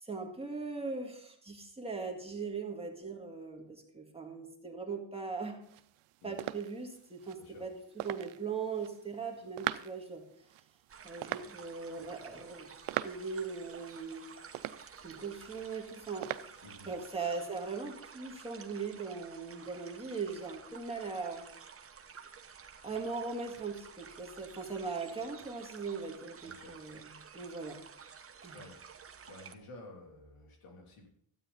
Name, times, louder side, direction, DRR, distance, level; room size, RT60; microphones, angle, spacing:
voice 1, 0.0-5.6 6.2-10.2 11.0-12.7 13.0-14.3 15.0-16.6 16.9-21.4 22.8-27.8 28.4-28.6, right 4 dB, 10° right, 0 dB, 1.9 m, -40 dB
sound 1, 5.6-16.9, right 15 dB, 85° right, 0.6 m, -43 dB
sound 2, 10.9-29.6, right 6 dB, 30° right, 1.0 m, -52 dB
voice 2, 26.4-26.7 28.5-28.8 29.3-31.1, left 1 dB, 85° left, 1 dB, 3.1 m, -52 dB
12.5 x 9.0 x 4.1 m, 0.69 s
cardioid pair, 110°, 49 cm